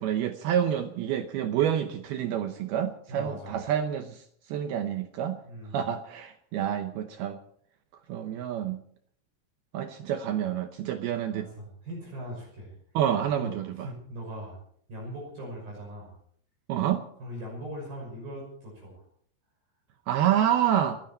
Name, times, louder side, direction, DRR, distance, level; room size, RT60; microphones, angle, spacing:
voice 1, 0.0-4.2 4.5-5.4 5.7-7.4 8.1-8.8 9.7-11.5 12.9-13.9 16.7-17.0 20.1-21.0, right 10 dB, 75° right, 8 dB, 2.3 m, -28 dB
voice 2, 3.1-3.6 5.5-5.8 11.3-12.7 13.4-14.6 14.9-16.1 17.2-19.0, equal, 50° right, -2 dB, 7.6 m, -40 dB
30.0 x 10.5 x 4.4 m, 0.62 s
omnidirectional pair, 5.4 m